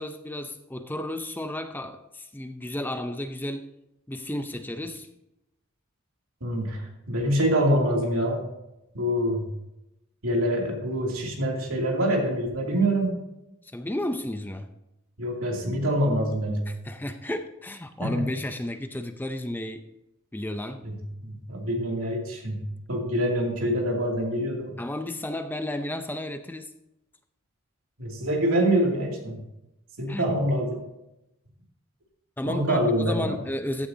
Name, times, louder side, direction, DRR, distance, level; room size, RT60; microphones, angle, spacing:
voice 1, 0.0-3.6 4.1-5.1 13.6-14.7 16.7-19.8 20.3-20.8 24.8-26.7 30.1-30.2 32.4-33.9, left 1 dB, 10° left, 8 dB, 0.5 m, -32 dB
voice 2, 6.4-8.4 8.9-9.5 10.2-13.2 15.2-16.6 18.0-18.3 20.8-20.9 21.5-24.7 28.0-29.4 30.0-30.8 32.4-33.4, equal, 85° right, 0 dB, 2.6 m, -25 dB
14.0 x 9.8 x 2.8 m, 0.90 s
head